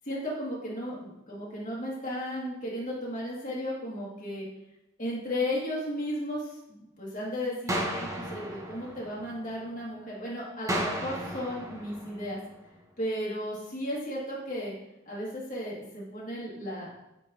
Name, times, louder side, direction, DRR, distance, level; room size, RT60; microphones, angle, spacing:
voice 1, 0.1-4.5 5.0-12.4 13.0-14.7 15.1-17.0, left 1 dB, 45° left, -5 dB, 1.9 m, -34 dB
sound 1, 7.7-9.7 10.7-12.7, right 1 dB, 15° right, 0.8 m, -35 dB
8.1 x 4.2 x 2.8 m, 0.86 s
head